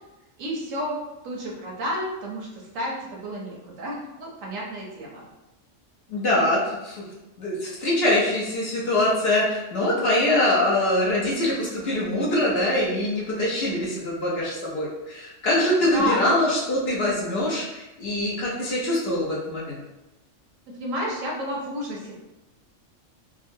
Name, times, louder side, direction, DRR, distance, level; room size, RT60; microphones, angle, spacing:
voice 1, 0.4-5.3 15.9-16.2 20.7-22.1, left 1 dB, 85° right, -2 dB, 1.2 m, -31 dB
voice 2, 6.1-7.1 7.4-19.8, left 1 dB, 55° left, -6 dB, 1.0 m, -23 dB
3.7 x 2.0 x 2.6 m, 0.98 s
omnidirectional pair, 1.3 m